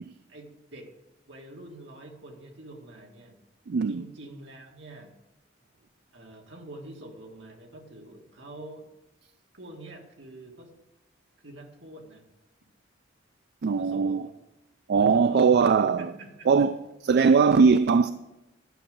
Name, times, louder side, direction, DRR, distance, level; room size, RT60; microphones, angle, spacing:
voice 1, 0.3-0.9 1.3-3.4 3.9-5.1 6.1-8.9 9.5-10.7 11.4-12.2 13.6-14.3 15.0-16.5, right 1 dB, 80° right, 2.0 m, -46 dB
voice 2, 3.7-4.0 13.6-14.2 14.9-16.1 16.5-16.8 17.0-18.1, right 5 dB, 60° right, 0.4 m, -20 dB
11.5 x 6.3 x 7.9 m
head